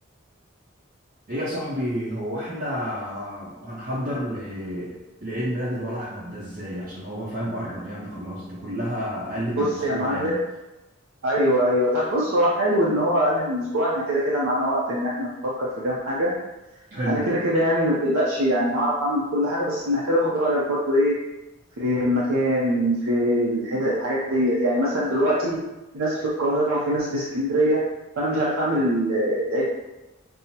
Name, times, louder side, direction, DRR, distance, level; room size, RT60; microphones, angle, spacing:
voice 1, 1.3-10.4 16.9-17.2 24.9-25.0, equal, 40° right, -7 dB, 0.5 m, -30 dB
voice 2, 9.6-10.4 11.2-15.3 15.6-16.3 17.1-21.2 21.8-25.6 25.9-27.8 28.2-29.7, equal, 85° right, -6 dB, 0.6 m, -23 dB
5.4 x 2.0 x 2.8 m, 1.0 s
head